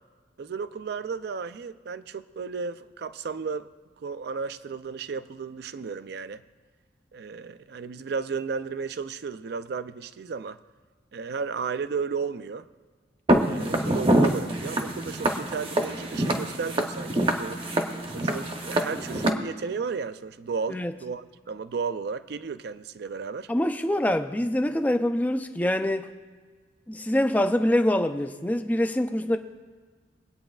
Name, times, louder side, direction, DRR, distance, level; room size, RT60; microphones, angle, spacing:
voice 1, 0.4-3.7 4.0-6.4 7.1-10.6 11.1-12.7 13.4-17.6 18.1-23.5, right 5 dB, 60° right, 14 dB, 0.4 m, -34 dB
Walk footsteps, 13.3-19.3, right 1 dB, 30° right, 0.8 m, -25 dB
voice 2, 23.5-26.1 26.9-29.4, left 1 dB, 10° left, 7 dB, 0.4 m, -25 dB
24.5 x 8.7 x 2.4 m, 1.5 s
head